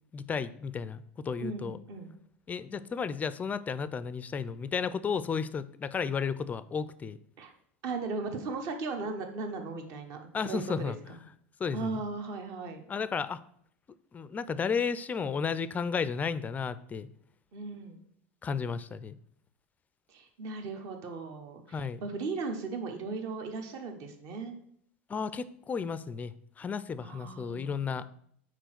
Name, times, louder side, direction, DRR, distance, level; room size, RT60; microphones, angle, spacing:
voice 1, 0.1-1.8 2.5-7.2 10.3-10.9 11.6-12.0 12.9-13.4 14.1-17.1 18.4-19.2 21.7-22.0 25.1-28.0, left 6 dB, 20° left, 16 dB, 0.4 m, -33 dB
voice 2, 1.4-2.1 7.4-7.5 7.8-11.2 11.7-12.8 17.5-18.0 20.1-24.5 27.0-28.0, right 4 dB, 55° right, 5 dB, 1.1 m, -37 dB
4.5 x 4.5 x 5.9 m, 0.66 s
hypercardioid pair, 90°, 7 cm